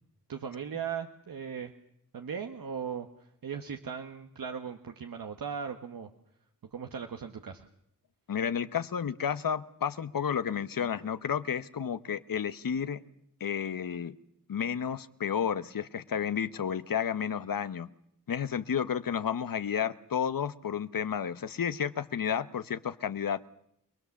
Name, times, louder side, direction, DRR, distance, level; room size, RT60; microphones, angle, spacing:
voice 1, 0.3-1.7 2.1-3.1 3.4-6.1 6.7-7.7, right 7 dB, 85° right, 5 dB, 1.3 m, -38 dB
voice 2, 8.3-13.0 13.4-14.1 14.5-17.9 18.3-23.5, left 8 dB, 80° left, 13 dB, 1.0 m, -31 dB
28.5 x 20.0 x 7.2 m, 0.73 s
cardioid pair, 60°, 33 cm